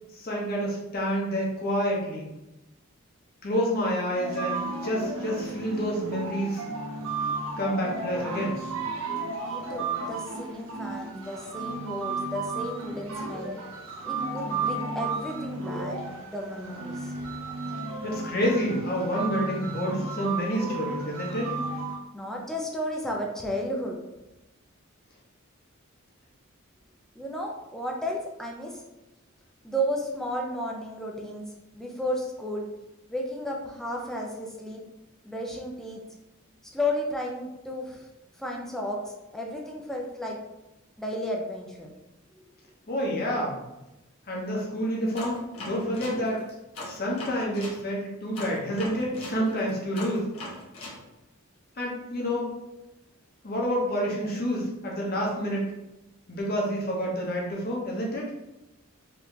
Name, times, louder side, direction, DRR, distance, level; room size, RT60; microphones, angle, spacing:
voice 1, 0.1-2.3 3.4-6.6 7.6-8.5 18.0-21.5 42.9-43.6 44.3-46.4 46.8-50.2 51.8-52.5 53.4-55.6 56.3-58.3, equal, 45° left, -2 dB, 1.1 m, -28 dB
sound 1, 4.1-22.0, right 3 dB, 70° right, 0.8 m, -33 dB
voice 2, 9.2-13.6 14.0-16.0 16.3-17.1 22.1-24.0 27.2-28.8 29.6-31.4 31.7-32.7 33.1-34.8 35.2-36.0 36.7-38.1 38.4-40.4 41.0-41.9, equal, ahead, -1 dB, 0.5 m, -33 dB
sound 2, 45.1-47.8 48.3-51.0, left 1 dB, 75° left, 1.2 m, -40 dB
4.3 x 3.3 x 2.7 m, 0.97 s
head